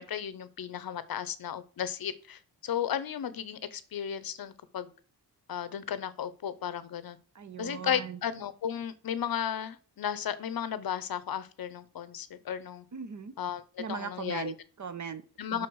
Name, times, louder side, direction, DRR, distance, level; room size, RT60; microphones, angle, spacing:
voice 1, 0.0-4.9 5.5-7.2 7.6-12.8 13.4-13.6 13.9-14.5 15.4-15.7, left 9 dB, 60° left, 0.7 m, -34 dB
voice 2, 7.3-8.2 12.9-13.3 13.8-15.2 15.5-15.7, right 6 dB, 45° right, 0.8 m, -39 dB
5.6 x 4.6 x 6.2 m
wide cardioid pair, 105°, 39 cm